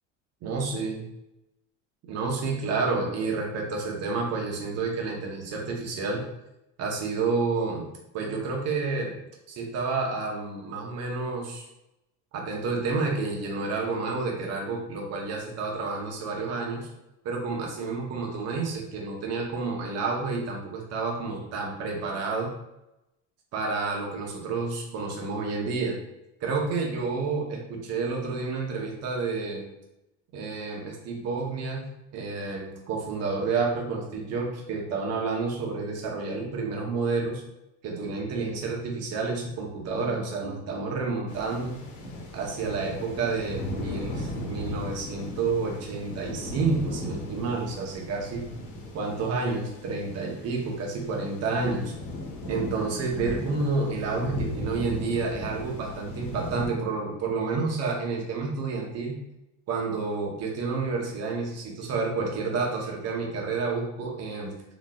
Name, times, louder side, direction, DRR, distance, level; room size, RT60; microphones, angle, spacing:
voice 1, 0.4-1.0 2.1-6.2 6.8-7.8 8.1-9.1 9.5-11.7 12.3-16.9 17.2-22.5 23.5-25.9 26.4-29.6 30.3-31.8 32.1-37.4 37.8-41.8 42.3-48.4 48.9-51.9 52.4-59.2 59.7-64.5, right 4 dB, 45° right, 0 dB, 1.0 m, -30 dB
sound 1, 41.3-56.7, left 1 dB, 70° left, 1.1 m, -37 dB
4.1 x 3.0 x 2.4 m, 0.89 s
cardioid pair, 140°, 35 cm